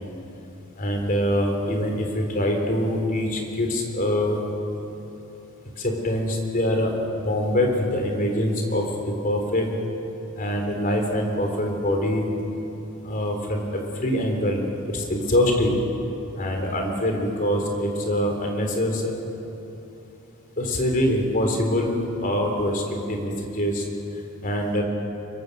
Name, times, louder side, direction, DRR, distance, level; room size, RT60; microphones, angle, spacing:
voice 1, 0.8-4.4 5.8-6.9 7.2-9.7 10.4-12.2 13.0-14.6 14.9-15.8 16.4-19.2 20.6-22.0 22.2-23.8 24.4-24.8, left 1 dB, 40° left, 2 dB, 3.4 m, -24 dB
24.5 x 23.0 x 6.5 m, 2.9 s
head